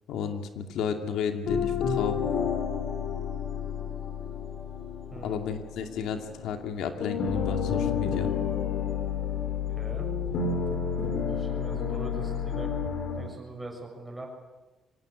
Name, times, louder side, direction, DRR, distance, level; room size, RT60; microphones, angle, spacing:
voice 1, 0.1-2.2 5.2-8.3, left 7 dB, 90° left, 5 dB, 2.5 m, -32 dB
sound 1, 1.4-6.7 7.0-13.3, left 7 dB, 60° left, 4.1 m, -30 dB
voice 2, 9.7-10.1 11.2-12.7 13.1-14.3, right 2 dB, 10° right, 1 dB, 6.7 m, -42 dB
25.5 x 18.0 x 8.5 m, 1.2 s
cardioid pair, 145°, 0 cm